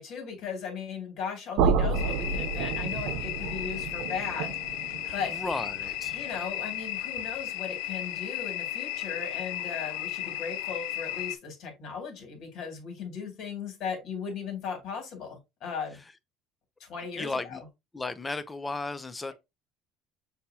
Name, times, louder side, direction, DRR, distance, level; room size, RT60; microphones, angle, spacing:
voice 1, 0.0-4.5 5.1-5.3 6.1-16.0 16.8-17.6, left 6 dB, 60° left, 2.2 m, -37 dB
sound 1, 1.6-7.5, right 5 dB, 80° right, 0.4 m, -31 dB
sound 2, 1.9-11.4, left 13 dB, 85° left, 0.4 m, -35 dB
voice 2, 5.0-6.1 17.1-17.6 17.9-19.3, left 3 dB, 15° left, 0.5 m, -34 dB
6.5 x 2.8 x 2.7 m
cardioid pair, 120°, 0 cm